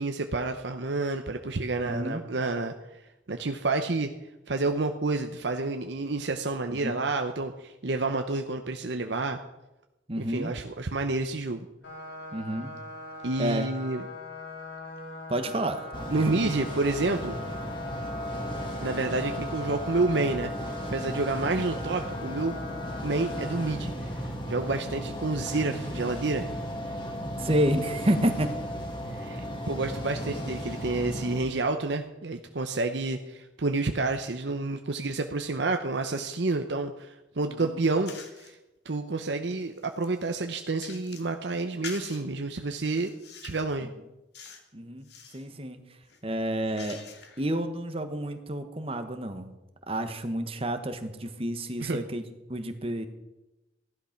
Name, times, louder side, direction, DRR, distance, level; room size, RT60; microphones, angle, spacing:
voice 1, 0.0-3.0 3.3-4.1 4.5-9.4 10.2-11.7 13.2-14.1 16.1-17.4 18.8-20.5 20.9-22.6 23.0-26.5 29.1-38.1 38.4-38.6 38.8-43.1 43.4-43.9 51.8-52.0, right 3 dB, 70° right, 6 dB, 0.8 m, -29 dB
voice 2, 1.8-2.2 6.7-7.0 10.1-10.5 12.3-12.7 13.4-13.7 15.3-15.9 16.1-16.4 27.4-28.5 37.4-37.8 44.7-45.1 45.3-45.8 46.2-47.0 47.4-49.5 49.9-52.2 52.5-53.1, right 1 dB, 30° right, 8 dB, 1.2 m, -29 dB
sound 1, 11.8-23.7, left 1 dB, 85° left, 5.1 m, -41 dB
sound 2, 15.9-31.4, equal, 25° left, 2.1 m, -35 dB
sound 3, 38.1-38.6 39.1-41.3 41.8-42.2 42.8-43.7 44.3-44.7 45.0-45.5 46.0-47.5, left 6 dB, 65° left, 2.0 m, -46 dB
15.5 x 11.5 x 5.9 m, 0.99 s
head